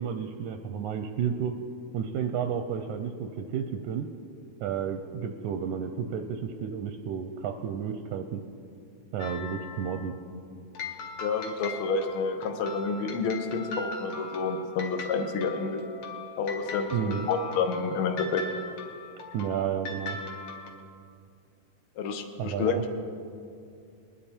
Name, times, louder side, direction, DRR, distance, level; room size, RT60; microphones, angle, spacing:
voice 1, 0.0-1.5 1.9-4.1 4.6-8.4 9.1-10.1 16.9-17.3 19.3-20.2 22.4-22.8, right 8 dB, 80° right, 6 dB, 1.9 m, -31 dB
sound 1, 9.2-10.1 10.7-20.7, left 3 dB, 60° left, 1.9 m, -40 dB
voice 2, 11.2-15.8 16.4-18.4 22.0-22.8, left 5 dB, 80° left, 5 dB, 1.2 m, -29 dB
21.0 x 10.5 x 4.4 m, 2.4 s
omnidirectional pair, 3.8 m